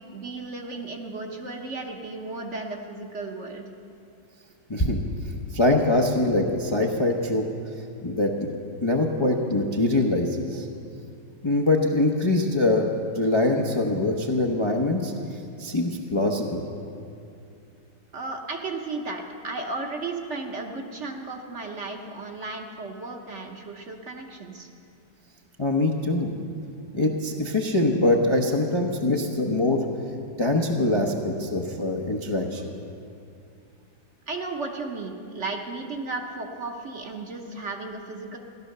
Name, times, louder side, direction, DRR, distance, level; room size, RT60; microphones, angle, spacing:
voice 1, 0.1-3.7 18.1-24.7 34.3-38.4, right 3 dB, 45° right, 2 dB, 1.2 m, -34 dB
voice 2, 4.7-5.0 5.5-7.5 8.0-8.5 8.8-10.7 11.4-12.9 13.1-15.1 15.6-16.6 25.6-26.3 26.9-29.8 30.4-32.6, left 2 dB, 25° left, 1 dB, 0.6 m, -23 dB
14.5 x 11.5 x 6.6 m, 2.5 s
omnidirectional pair, 1.9 m